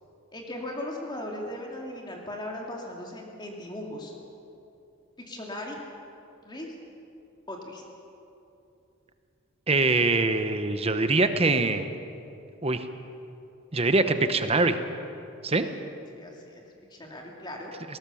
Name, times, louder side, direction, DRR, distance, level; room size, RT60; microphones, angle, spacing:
voice 1, 0.3-4.1 5.3-5.8 6.4-6.7 7.5-7.8 16.1-16.6 16.9-17.7, left 1 dB, 20° left, 0 dB, 2.5 m, -38 dB
voice 2, 9.7-11.9 12.6-12.9 13.7-14.8 15.4-15.7, right 3 dB, 30° right, 9 dB, 1.0 m, -23 dB
20.5 x 18.5 x 7.2 m, 2.7 s
head